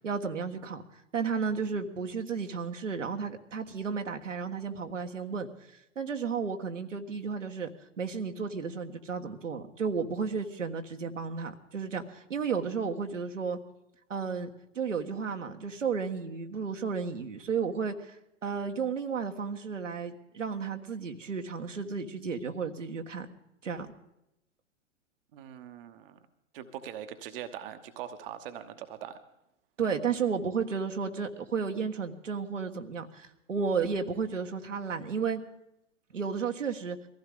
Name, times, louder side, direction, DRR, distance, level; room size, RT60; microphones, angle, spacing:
voice 1, 0.0-0.8 1.1-5.5 5.9-7.7 8.0-13.6 14.1-14.5 14.7-18.2 18.4-23.3 23.6-23.9 29.8-35.4 36.1-37.0, right 5 dB, 75° right, 5 dB, 1.5 m, -33 dB
voice 2, 25.3-26.2 26.5-29.2, right 10 dB, 45° right, 9 dB, 1.2 m, -42 dB
23.0 x 15.5 x 3.8 m, 0.84 s
figure-of-eight pair, 105°, 38 cm